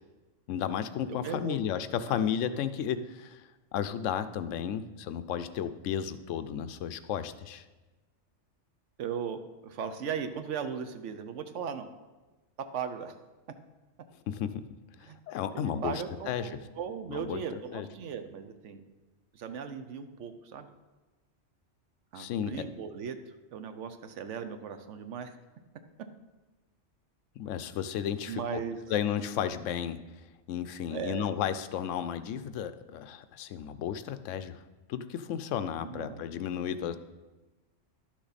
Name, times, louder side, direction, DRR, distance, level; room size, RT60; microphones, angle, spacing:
voice 1, 0.5-7.7 14.3-14.6 15.0-16.5 17.1-17.4 17.7-17.9 22.1-22.7 27.4-28.6 28.9-30.0 30.5-34.6 34.9-37.0, left 9 dB, 90° left, 11 dB, 0.9 m, -33 dB
voice 2, 1.1-1.6 2.1-2.2 9.0-11.9 12.7-13.1 15.1-15.2 15.5-18.8 19.3-20.7 22.1-23.2 23.5-25.4 28.3-28.8 30.9-31.3 35.8-36.2, right 7 dB, 75° right, 8 dB, 1.0 m, -37 dB
11.5 x 6.2 x 4.1 m, 1.2 s
omnidirectional pair, 1.2 m